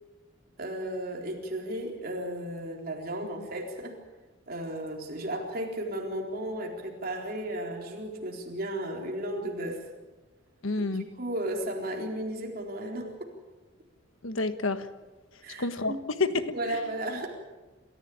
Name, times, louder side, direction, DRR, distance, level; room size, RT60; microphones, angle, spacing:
voice 1, 0.6-4.0 4.5-9.9 10.8-13.3 15.4-16.0 16.5-17.3, right 1 dB, 45° right, 1 dB, 4.1 m, -34 dB
voice 2, 10.6-11.0 14.2-14.9 15.6-16.8, left 3 dB, 80° left, 10 dB, 1.4 m, -29 dB
27.5 x 14.5 x 8.7 m, 1.2 s
head